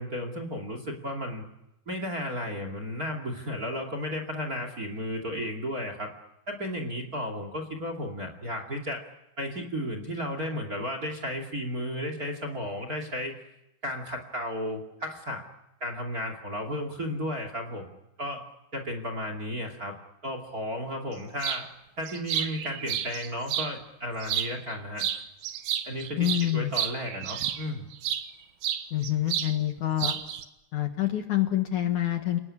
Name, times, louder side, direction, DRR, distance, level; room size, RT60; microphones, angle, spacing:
voice 1, 0.0-1.4 1.9-6.1 6.5-9.0 9.4-13.4 13.8-15.4 15.8-17.9 18.2-18.5 18.7-19.9 20.2-21.7 22.0-25.0 25.8-27.9, equal, 25° right, 5 dB, 2.5 m, -34 dB
sound 1, 21.4-21.6 22.1-23.7 24.2-24.7 25.0-28.3 28.6-29.5 29.8-30.4, right 10 dB, 85° right, 3.3 m, -31 dB
voice 2, 26.2-26.7 28.9-30.2 30.7-32.4, left 12 dB, 60° left, 6 dB, 2.5 m, -27 dB
29.5 x 19.5 x 9.9 m, 0.90 s
omnidirectional pair, 4.4 m